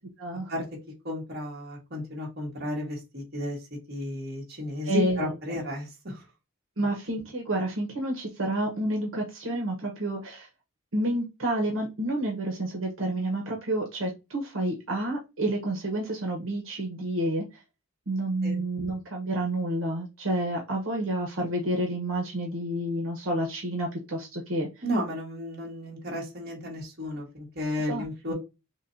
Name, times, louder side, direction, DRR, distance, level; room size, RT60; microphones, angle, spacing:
voice 1, 0.2-0.5 4.8-5.6 6.8-10.5 10.9-17.4 18.1-24.7 27.8-28.0, right 1 dB, 80° right, 0 dB, 1.1 m, -29 dB
voice 2, 1.0-3.6 3.9-6.1 18.4-18.6 24.8-28.3, left 1 dB, 50° right, -1 dB, 1.7 m, -33 dB
6.1 x 2.3 x 2.7 m, 0.26 s
head